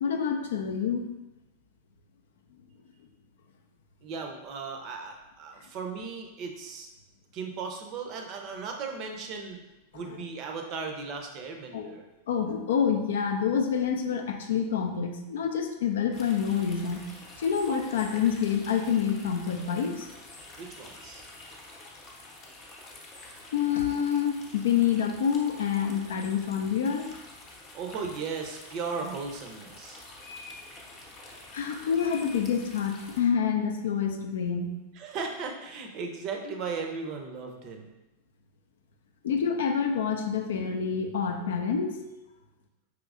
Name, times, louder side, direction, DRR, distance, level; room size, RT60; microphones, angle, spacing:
voice 1, 0.0-1.1 11.7-11.8 12.3-17.0 17.4-20.1 23.5-27.1 31.5-34.7 39.2-42.0, left 7 dB, 60° left, 5 dB, 0.4 m, -27 dB
voice 2, 4.0-6.9 7.3-9.6 9.9-12.0 20.6-21.2 27.7-30.0 35.0-37.9, right 5 dB, 40° right, 3 dB, 0.6 m, -36 dB
sound 1, 16.1-33.2, left 2 dB, 30° left, 0.8 m, -48 dB
4.9 x 3.1 x 2.4 m, 1.0 s
figure-of-eight pair, 90°, 0 cm